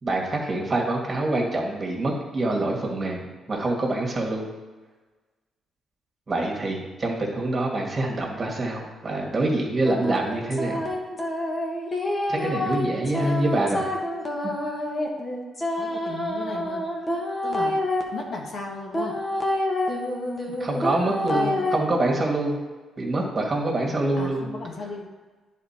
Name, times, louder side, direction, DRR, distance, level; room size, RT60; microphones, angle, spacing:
voice 1, 0.0-4.5 6.3-10.9 12.3-13.9 14.4-14.5 20.5-22.6 23.0-24.5, right 2 dB, 35° right, -1 dB, 2.1 m, -26 dB
sound 1, 9.8-18.0 18.9-21.8, left 1 dB, 30° left, 1.4 m, -28 dB
voice 2, 15.7-16.8 17.4-17.8 18.1-19.2 21.3-21.7 24.2-25.1, left 3 dB, 55° left, 0 dB, 1.5 m, -35 dB
9.9 x 4.3 x 4.4 m, 1.3 s
cardioid pair, 80°, 0 cm